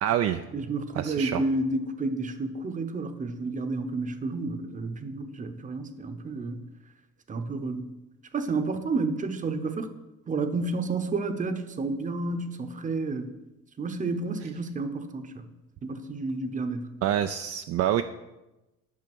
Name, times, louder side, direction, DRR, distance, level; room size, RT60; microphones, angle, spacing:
voice 1, 0.0-0.4 1.0-1.4 17.0-18.0, right 11 dB, 50° right, 8 dB, 0.5 m, -26 dB
voice 2, 0.5-6.6 7.3-8.0 8.3-9.9 10.3-13.3 13.8-15.5 15.8-16.9, right 3 dB, 25° right, 9 dB, 0.9 m, -30 dB
11.0 x 5.6 x 6.1 m, 1.0 s
cardioid pair, 125°, 31 cm